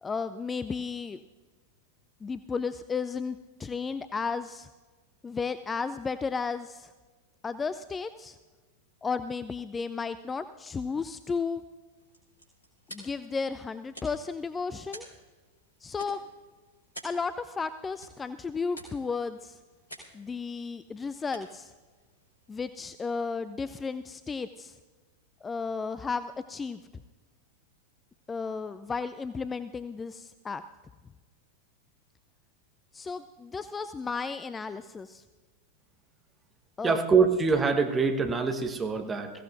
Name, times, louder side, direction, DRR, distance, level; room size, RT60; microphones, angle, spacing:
voice 1, 0.0-1.2 2.2-4.7 5.2-6.9 7.4-8.4 9.0-11.6 12.9-15.1 15.8-16.2 17.0-19.6 20.1-21.7 22.5-24.8 25.4-26.8 28.3-30.6 32.9-35.2 36.8-37.0, left 5 dB, 15° left, 13 dB, 0.4 m, -33 dB
sound 1, 11.8-23.0, right 1 dB, 75° left, 3.6 m, -51 dB
voice 2, 36.8-39.3, right 5 dB, 15° right, 5 dB, 1.3 m, -24 dB
21.5 x 15.5 x 2.6 m, 1.3 s
figure-of-eight pair, 90°, 0 cm